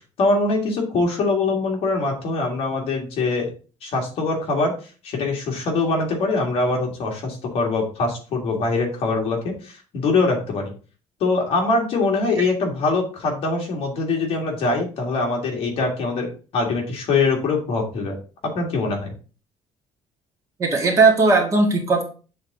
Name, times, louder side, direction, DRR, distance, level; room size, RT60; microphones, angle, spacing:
voice 1, 0.2-3.5 3.8-4.7 5.0-10.7 11.2-18.2 18.6-19.1, left 3 dB, 55° left, 0 dB, 1.9 m, -23 dB
voice 2, 20.6-22.0, right 3 dB, 25° right, 1 dB, 1.4 m, -17 dB
7.8 x 3.9 x 3.7 m, 0.36 s
cardioid pair, 175°, 12 cm